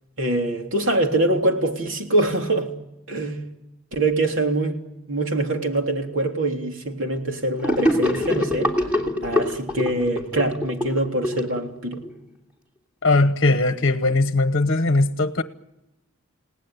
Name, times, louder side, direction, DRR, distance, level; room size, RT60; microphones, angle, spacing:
voice 1, 0.2-2.7 3.1-3.4 3.9-4.8 5.1-8.7 9.2-12.0, right 2 dB, 60° right, 3.4 m, -24 dB
Gurgling / Sink (filling or washing), 7.6-12.1, left 1 dB, 5° right, 3.1 m, -24 dB
voice 2, 13.0-15.4, left 2 dB, 50° left, 1.1 m, -19 dB
30.0 x 18.5 x 9.5 m
head